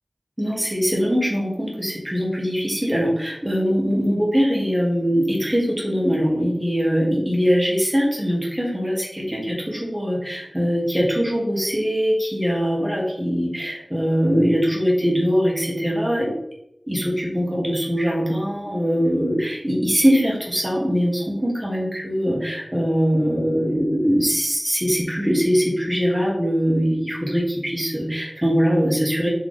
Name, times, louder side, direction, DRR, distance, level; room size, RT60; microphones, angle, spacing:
voice 1, 0.4-16.3 16.9-29.3, equal, 15° right, -3 dB, 1.3 m, -22 dB
3.5 x 3.3 x 3.9 m, 0.79 s
wide cardioid pair, 55°, 0 cm